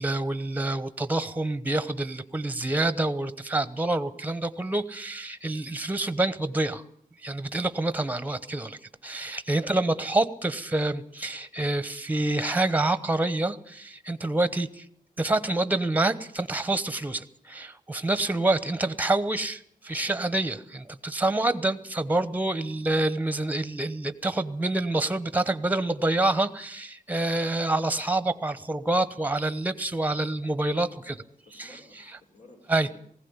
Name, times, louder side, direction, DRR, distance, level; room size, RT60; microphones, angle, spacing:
voice 1, 0.0-6.8 7.2-14.8 15.2-31.1 31.6-31.7 32.7-33.0, right 2 dB, 10° right, 14 dB, 1.0 m, -27 dB
voice 2, 9.6-10.0 22.6-22.8 31.0-33.0, left 2 dB, 65° left, 2 dB, 4.0 m, -54 dB
19.0 x 16.5 x 9.6 m, 0.63 s
wide cardioid pair, 150°, 15 cm